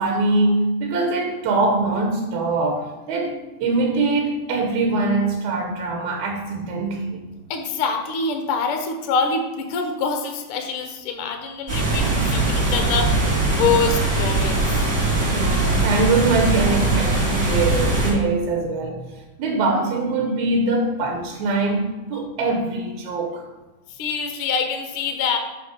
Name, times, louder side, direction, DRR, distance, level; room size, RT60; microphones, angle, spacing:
voice 1, 0.0-7.2 15.2-19.1 19.4-23.5, right 3 dB, 80° right, 2 dB, 2.3 m, -23 dB
voice 2, 7.5-14.9 23.9-25.4, left 5 dB, 65° left, 5 dB, 1.4 m, -25 dB
sound 1, 11.7-18.1, right 2 dB, 30° right, 2.9 m, -21 dB
9.0 x 3.6 x 6.4 m, 1.1 s
omnidirectional pair, 3.3 m